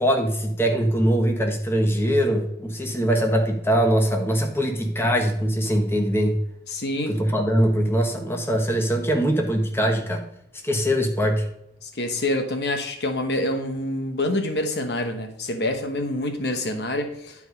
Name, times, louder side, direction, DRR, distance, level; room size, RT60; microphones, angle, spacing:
voice 1, 0.0-6.4 7.1-10.2 10.6-11.5, equal, 15° left, 2 dB, 1.2 m, -22 dB
voice 2, 6.7-7.1 11.8-17.3, left 1 dB, 60° left, 5 dB, 1.1 m, -26 dB
10.5 x 4.8 x 5.2 m, 0.81 s
head